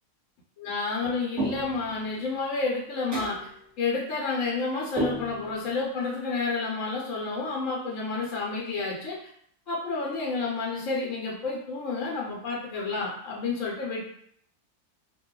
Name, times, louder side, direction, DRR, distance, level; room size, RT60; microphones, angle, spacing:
voice 1, 0.6-3.4 3.8-9.2 9.7-14.1, left 4 dB, 70° left, -4 dB, 1.1 m, -30 dB
sound 1, 1.4-1.9 3.1-3.5 5.0-5.7, right 2 dB, 15° right, 1.0 m, -31 dB
2.5 x 2.2 x 3.6 m, 0.67 s
omnidirectional pair, 1.4 m